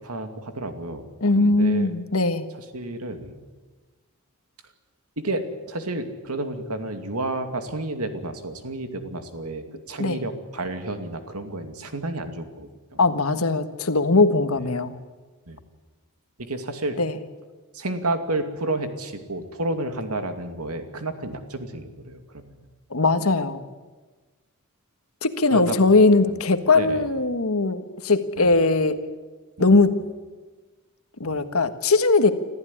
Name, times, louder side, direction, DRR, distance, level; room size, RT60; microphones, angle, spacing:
voice 1, 0.0-1.0 1.3-1.9 2.7-3.4 5.2-13.0 15.5-15.6 16.4-17.0 17.7-22.7 25.5-25.8 26.2-26.4 26.7-27.1 28.4-28.6 29.6-29.8 31.2-31.4, right 2 dB, 80° right, 7 dB, 2.5 m, -31 dB
voice 2, 1.2-2.5 10.0-10.2 13.0-15.0 17.0-17.2 22.9-23.6 25.2-29.0 29.6-30.0 31.2-32.3, left 3 dB, 70° left, 10 dB, 1.5 m, -20 dB
26.0 x 15.0 x 10.0 m, 1.3 s
head